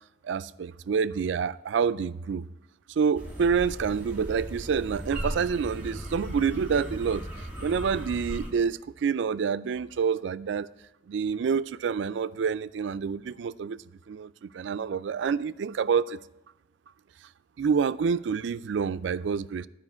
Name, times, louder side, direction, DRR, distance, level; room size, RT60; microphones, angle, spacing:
voice 1, 0.2-2.4 3.0-7.2 7.6-10.7 11.1-13.8 14.1-16.2 17.6-19.7, right 6 dB, 70° right, 0.3 m, -27 dB
sound 1, 3.1-8.5, right 1 dB, 10° right, 1.9 m, -37 dB
9.7 x 5.0 x 7.9 m
head